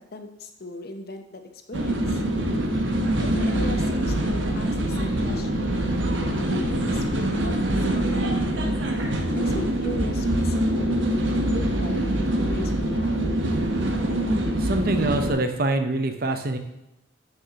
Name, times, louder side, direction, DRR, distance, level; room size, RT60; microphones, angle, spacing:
voice 1, 0.0-1.4 1.7-2.2 3.2-5.7 6.3-8.5 9.2-13.3, left 2 dB, 50° left, 6 dB, 0.8 m, -37 dB
sound 1, 1.7-15.3, right 1 dB, 75° right, 1.0 m, -24 dB
voice 2, 14.6-16.6, right 2 dB, 50° right, 7 dB, 0.7 m, -24 dB
9.7 x 6.5 x 2.9 m, 0.88 s
head